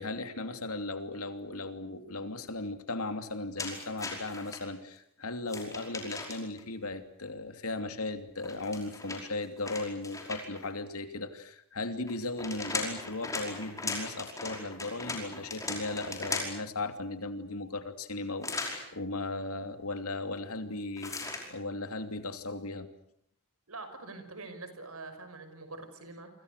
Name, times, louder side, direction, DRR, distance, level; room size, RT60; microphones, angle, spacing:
voice 1, 0.0-21.2 21.5-22.9, left 2 dB, 85° left, 8 dB, 2.8 m, -37 dB
sound 1, 3.6-4.6 5.5-6.6 8.4-10.7 12.1-16.7 18.4-18.8 21.0-21.5, left 3 dB, 15° left, 5.3 m, -38 dB
voice 2, 23.7-26.3, right 3 dB, 80° right, 8 dB, 6.0 m, -44 dB
30.0 x 25.0 x 6.7 m, 0.69 s
head